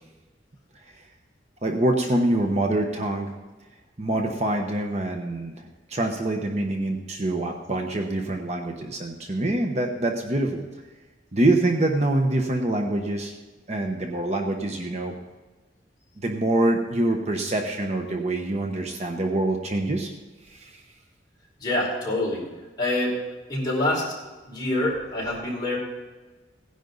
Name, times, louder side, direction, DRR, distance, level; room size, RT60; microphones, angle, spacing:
voice 1, 1.6-3.3 4.0-10.6 11.3-13.4 13.7-15.1 16.2-20.1 20.5-20.8, right 1 dB, 40° right, 3 dB, 1.0 m, -25 dB
voice 2, 21.6-22.4 22.8-23.1 23.5-24.1 24.5-25.8, left 1 dB, 25° left, -5 dB, 4.9 m, -26 dB
17.0 x 10.5 x 4.0 m, 1.2 s
head